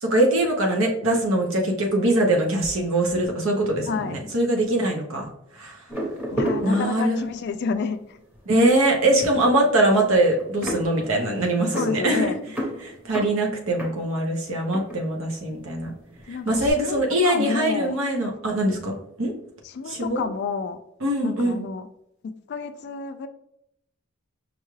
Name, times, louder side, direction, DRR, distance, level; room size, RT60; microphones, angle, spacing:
voice 1, 0.0-5.8 6.6-7.2 8.5-12.3 12.8-15.9 16.3-18.9 19.2-19.3 19.9-20.3 21.0-21.7, right 1 dB, 75° right, 1 dB, 0.9 m, -22 dB
voice 2, 3.8-4.2 6.3-8.2 11.7-12.4 16.3-18.0 19.7-20.8 21.2-21.9 22.5-23.3, left 5 dB, 55° left, 10 dB, 0.3 m, -29 dB
sound 1, 5.9-7.5 8.1-8.4 8.7-15.8 16.1-16.7, right 1 dB, 10° right, 0.8 m, -32 dB
5.3 x 2.3 x 3.1 m, 0.75 s
head